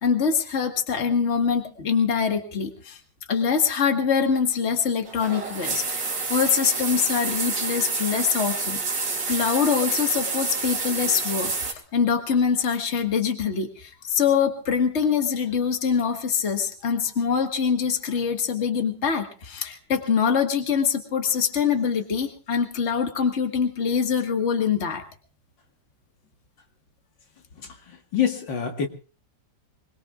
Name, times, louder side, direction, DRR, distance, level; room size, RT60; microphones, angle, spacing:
voice 1, 0.0-3.0 3.3-5.8 6.3-25.0, left 6 dB, 40° left, 5 dB, 1.9 m, -24 dB
sound 1, 5.1-11.7, right 4 dB, 70° right, 3.2 m, -28 dB
voice 2, 27.6-28.9, left 8 dB, 75° left, 4 dB, 2.4 m, -27 dB
25.5 x 21.0 x 2.5 m, 0.36 s
omnidirectional pair, 2.0 m